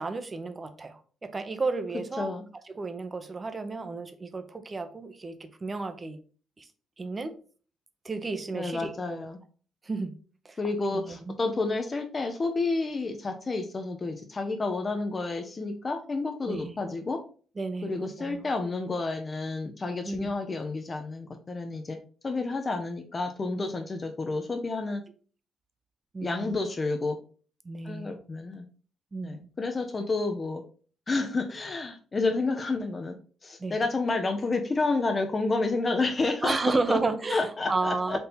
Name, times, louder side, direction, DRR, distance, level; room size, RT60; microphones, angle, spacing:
voice 1, 0.0-6.2 6.6-6.7 7.0-7.3 8.0-9.3 9.8-10.1 10.4-10.6 10.9-11.4 16.5-16.7 17.6-18.5 20.0-20.3 26.1-26.6 27.6-28.1 29.1-29.5 33.6-33.8 36.4-38.2, right 3 dB, 30° right, 9 dB, 0.6 m, -32 dB
voice 2, 8.5-9.4 10.6-17.2 17.8-22.0 22.2-25.0 26.2-27.2 27.8-28.6 29.2-30.6 31.1-33.1 33.4-36.5 36.9-37.0 37.3-38.2, left 3 dB, 30° left, 5 dB, 0.5 m, -30 dB
4.2 x 2.7 x 3.4 m, 0.41 s
cardioid pair, 90°, 0 cm